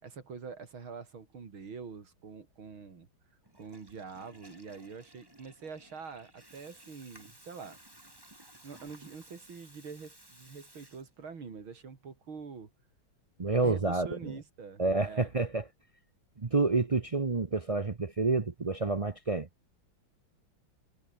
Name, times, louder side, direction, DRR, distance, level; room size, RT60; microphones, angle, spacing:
voice 1, 0.0-3.1 3.5-7.8 8.6-12.7 13.6-15.3, right 5 dB, 90° right, 3.9 m, -45 dB
Water tap faucet / Toilet flush, 3.4-11.5, right 1 dB, 10° right, 4.1 m, -57 dB
voice 2, 13.4-14.3 14.8-15.6 16.4-19.5, right 3 dB, 65° right, 0.3 m, -29 dB
omnidirectional pair, 2.2 m